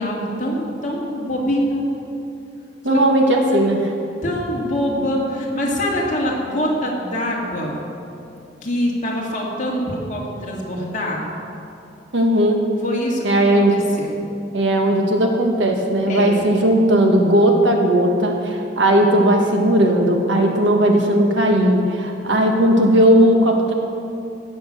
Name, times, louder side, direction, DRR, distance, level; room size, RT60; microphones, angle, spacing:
voice 1, 0.0-1.9 2.9-3.0 3.3-3.4 4.2-7.9 8.6-11.3 12.8-14.2 16.1-16.5, equal, 45° left, -3 dB, 2.6 m, -24 dB
voice 2, 2.8-3.9 12.1-12.7 13.2-13.7 14.5-23.7, right 1 dB, 80° right, 2 dB, 1.6 m, -16 dB
16.5 x 7.2 x 6.8 m, 2.6 s
head